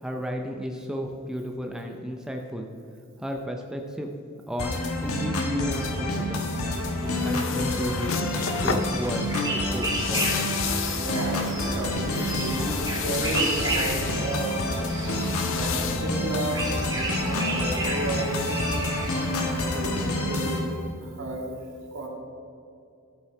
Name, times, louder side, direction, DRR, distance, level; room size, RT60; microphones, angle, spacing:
voice 1, 0.0-2.7 3.2-4.1 4.5-6.8 7.2-10.5, equal, 5° right, 2 dB, 0.5 m, -33 dB
sound 1, 4.6-20.6, left 1 dB, 85° left, 1.4 m, -28 dB
sound 2, 6.5-17.3, left 7 dB, 60° left, 0.6 m, -34 dB
sound 3, 8.8-19.7, right 2 dB, 20° right, 1.3 m, -33 dB
voice 2, 10.9-14.7 15.4-21.5 21.9-22.1, right 2 dB, 65° right, -1 dB, 2.0 m, -33 dB
13.0 x 5.5 x 4.7 m, 2.6 s
head